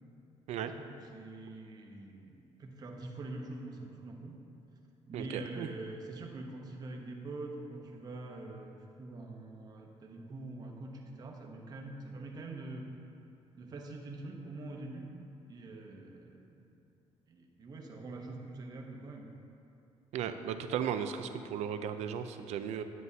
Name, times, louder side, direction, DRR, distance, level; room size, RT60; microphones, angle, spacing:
voice 1, 0.6-4.4 5.1-12.9 13.5-15.1 15.5-16.6 17.3-19.3, right 2 dB, 35° right, 1 dB, 0.8 m, -44 dB
voice 2, 5.1-5.7 20.1-22.8, right 8 dB, 75° right, 9 dB, 0.5 m, -36 dB
9.4 x 9.4 x 2.7 m, 2.7 s
cardioid pair, 165°, 11 cm